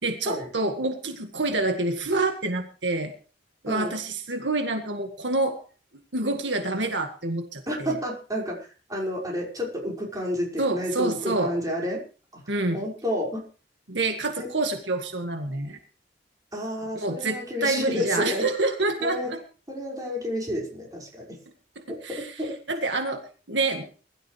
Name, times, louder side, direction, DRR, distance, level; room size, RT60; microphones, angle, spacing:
voice 1, 0.0-3.1 3.6-5.6 6.1-7.9 10.6-11.5 12.5-12.8 13.9-15.8 16.9-19.4 21.8-22.3 22.7-23.9, right 2 dB, 80° right, 5 dB, 1.9 m, -27 dB
voice 2, 7.7-12.0 12.3-12.4 12.7-13.4 14.4-14.5 16.5-18.5 19.0-19.3 19.7-21.4 21.9-22.6, equal, 20° right, -2 dB, 5.5 m, -30 dB
21.5 x 13.0 x 3.4 m, 0.39 s
head